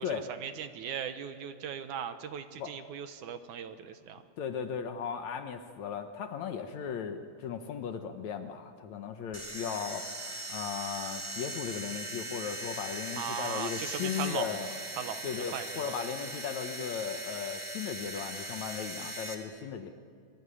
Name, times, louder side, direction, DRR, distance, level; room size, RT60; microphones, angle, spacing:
voice 1, 0.0-4.2 13.2-14.7 15.0-15.9, right 8 dB, 70° right, 9 dB, 2.3 m, -39 dB
voice 2, 4.4-10.1 10.5-14.7 15.2-19.9, left 7 dB, 65° left, 7 dB, 2.1 m, -36 dB
sound 1, 9.3-19.3, right 1 dB, 10° right, 2.3 m, -40 dB
27.5 x 21.5 x 10.0 m, 2.3 s
omnidirectional pair, 4.0 m